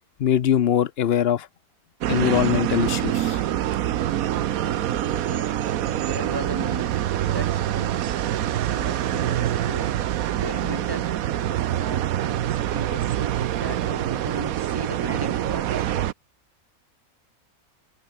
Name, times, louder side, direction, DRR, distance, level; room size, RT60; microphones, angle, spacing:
voice 1, 0.2-1.5 2.1-3.4, left 9 dB, 55° left, 0.7 m, -22 dB
sound 1, 2.0-16.1, right 12 dB, 70° right, 1.2 m, -25 dB
sound 2, 3.9-14.5, right 3 dB, 85° right, 4.6 m, -51 dB
sound 3, 4.6-9.9, right 2 dB, 45° right, 4.3 m, -45 dB
voice 2, 5.2-5.5 6.0-7.0 7.3-8.0 8.7-10.0 10.4-11.1 11.4-16.1, right 1 dB, 15° right, 1.7 m, -37 dB
omnidirectional pair, 1.6 m